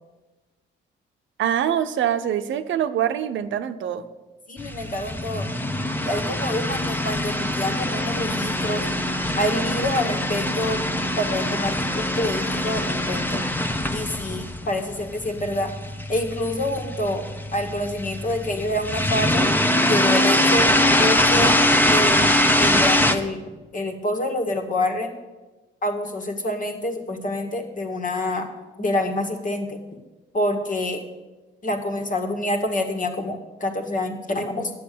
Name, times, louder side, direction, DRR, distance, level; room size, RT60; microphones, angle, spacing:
voice 1, 1.4-4.0, right 10 dB, 75° right, 10 dB, 0.8 m, -24 dB
voice 2, 4.5-5.5 6.0-8.8 9.4-10.8 11.2-13.4 13.9-15.7 16.1-17.2 17.5-19.4 19.8-20.7 21.0-21.6 21.9-23.4 23.7-25.1 25.8-28.5 28.8-29.8 30.3-31.0 31.6-34.7, left 1 dB, 40° left, 5 dB, 2.0 m, -27 dB
sound 1, 4.6-23.1, left 1 dB, 10° left, 0.9 m, -23 dB
10.5 x 7.8 x 8.6 m, 1.2 s
cardioid pair, 90°, 20 cm